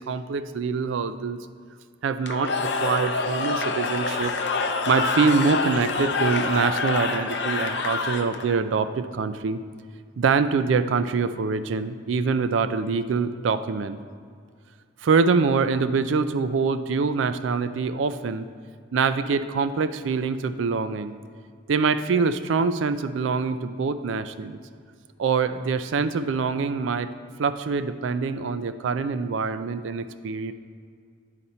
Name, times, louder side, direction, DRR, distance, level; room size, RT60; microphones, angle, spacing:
voice 1, 0.0-1.4 2.0-2.5 2.8-4.3 4.9-9.6 10.2-14.0 15.0-18.4 18.9-21.1 21.7-24.6 25.2-27.1 27.4-30.5, right 5 dB, 85° right, 11 dB, 0.4 m, -24 dB
Cheering / Crowd, 2.2-8.6, left 3 dB, 60° left, 0.5 m, -26 dB
10.5 x 4.1 x 4.2 m, 2.1 s
head